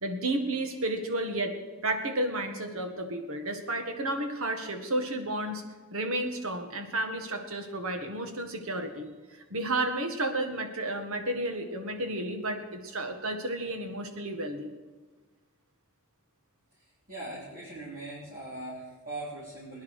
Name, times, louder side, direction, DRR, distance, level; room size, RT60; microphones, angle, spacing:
voice 1, 0.0-1.6 1.8-5.6 5.9-9.1 9.5-14.7, right 1 dB, 70° right, 6 dB, 1.8 m, -32 dB
voice 2, 17.1-19.8, right 2 dB, 40° right, -9 dB, 4.1 m, -40 dB
22.0 x 10.0 x 5.0 m, 1.3 s
head